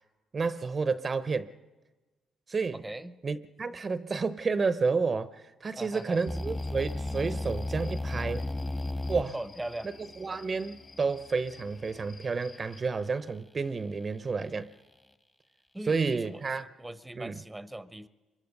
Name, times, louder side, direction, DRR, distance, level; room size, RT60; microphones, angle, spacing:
voice 1, 0.3-1.5 2.5-2.8 3.2-8.5 9.1-9.3 10.2-14.7 15.9-16.7 17.2-17.3, right 4 dB, 35° right, 0.8 m, -30 dB
voice 2, 2.8-3.2 5.8-6.2 9.3-9.9 15.7-18.1, right 1 dB, 10° right, 0.9 m, -40 dB
sound 1, 5.9-12.8, left 4 dB, 45° left, 4.7 m, -54 dB
sound 2, 6.3-12.2, left 2 dB, 15° left, 1.4 m, -36 dB
26.0 x 23.5 x 5.4 m
cardioid pair, 90°, 0 cm